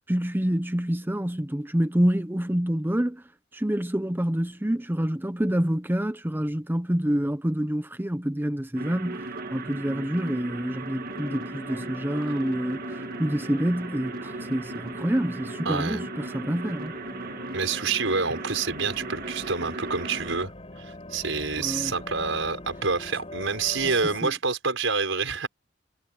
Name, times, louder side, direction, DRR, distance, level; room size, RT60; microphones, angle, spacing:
voice 1, 0.1-3.2 3.5-17.0 21.6-21.9 24.2-24.3, equal, 10° right, 0.7 m, -27 dB
sound 1, 8.7-20.4, right 2 dB, 50° right, 1.8 m, -37 dB
sound 2, 11.1-24.2, left 1 dB, 30° left, 5.6 m, -44 dB
voice 2, 15.7-16.0 17.5-20.5 20.8-25.5, right 4 dB, 80° right, 5.4 m, -27 dB
head